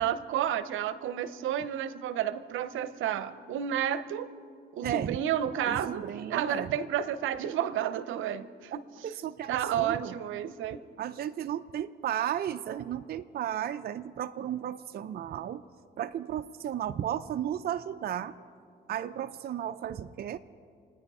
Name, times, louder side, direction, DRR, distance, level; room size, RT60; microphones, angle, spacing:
voice 1, 0.0-4.3 4.7-6.0 6.3-8.8 9.5-10.8, right 10 dB, 80° right, 14 dB, 0.7 m, -31 dB
voice 2, 4.8-5.2 5.7-6.7 8.7-10.1 11.0-15.6 16.0-18.3 18.9-20.4, right 10 dB, 50° right, 8 dB, 0.5 m, -34 dB
28.5 x 9.7 x 4.9 m, 2.3 s
cardioid pair, 90°, 20 cm